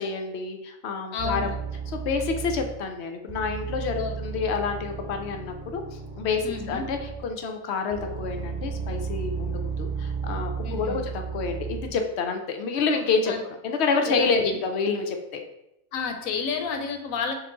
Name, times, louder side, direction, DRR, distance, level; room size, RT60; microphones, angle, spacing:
voice 1, 0.0-1.5 1.9-5.8 6.2-13.3 13.6-15.4, left 4 dB, 60° left, 5 dB, 0.8 m, -28 dB
voice 2, 1.1-1.6 4.0-4.2 6.4-6.8 10.6-11.0 13.3-13.4 14.1-14.6 15.9-17.3, left 5 dB, 80° left, 5 dB, 1.1 m, -30 dB
sound 1, 1.2-2.9 3.3-7.4 7.9-12.1, right 6 dB, 40° right, 1.4 m, -34 dB
5.5 x 2.5 x 3.8 m, 0.86 s
omnidirectional pair, 1.4 m